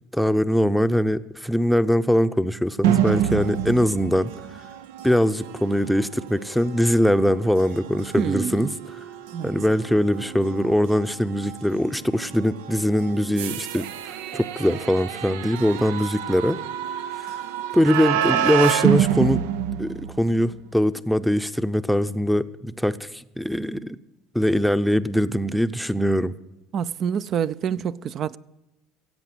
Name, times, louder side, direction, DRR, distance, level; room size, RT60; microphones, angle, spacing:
voice 1, 0.1-4.3 5.0-8.7 9.4-16.6 17.2-17.4 17.7-19.4 19.8-24.0 24.3-26.3, equal, ahead, 0.7 m, -22 dB
sound 1, 2.8-20.6, right 11 dB, 90° right, 0.7 m, -28 dB
voice 2, 8.2-8.7 9.3-9.5 26.7-28.4, right 8 dB, 50° right, 0.5 m, -26 dB
16.5 x 8.2 x 7.8 m
supercardioid pair, 100°, 0 cm